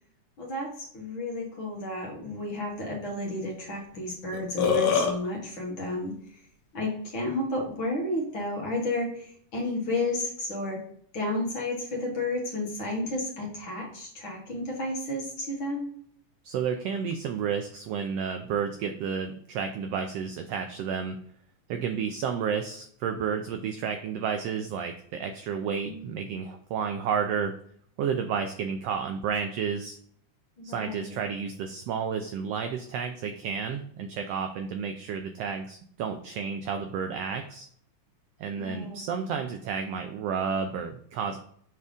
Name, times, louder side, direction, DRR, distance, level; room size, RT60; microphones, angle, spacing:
voice 1, 0.4-6.4 6.7-10.8 11.1-15.9 25.8-26.1 30.6-31.2 38.6-39.1, left 1 dB, 50° left, -2 dB, 1.9 m, -32 dB
Burping eructation, 3.9-4.0 4.3-5.1, left 7 dB, 70° left, 1.9 m, -23 dB
voice 2, 16.4-21.2 21.7-27.5 28.0-30.0 30.6-37.7 38.4-41.4, right 6 dB, 85° right, 6 dB, 1.4 m, -31 dB
6.8 x 3.5 x 5.0 m, 0.62 s
omnidirectional pair, 3.4 m